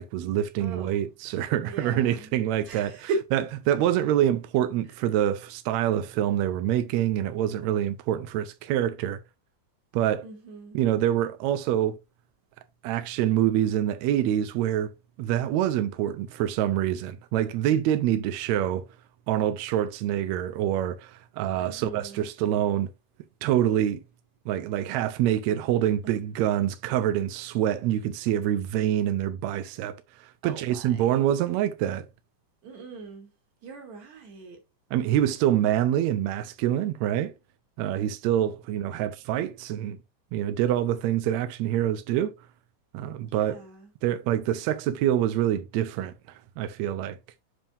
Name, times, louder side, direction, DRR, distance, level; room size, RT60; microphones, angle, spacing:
voice 1, 0.0-9.2 9.9-10.2 10.7-12.0 12.8-14.9 15.2-18.8 19.3-22.9 23.4-24.0 24.5-32.1 34.9-37.3 37.8-40.0 40.3-42.3 42.9-43.6 44.0-47.2, right 11 dB, 80° right, 1.6 m, -26 dB
voice 2, 0.6-1.1 1.6-3.3 10.2-10.9 21.5-22.3 26.0-26.1 30.4-31.2 32.6-33.3 33.6-34.6 43.3-43.9, right 3 dB, 60° right, 3.2 m, -38 dB
7.3 x 5.4 x 2.6 m
omnidirectional pair, 3.7 m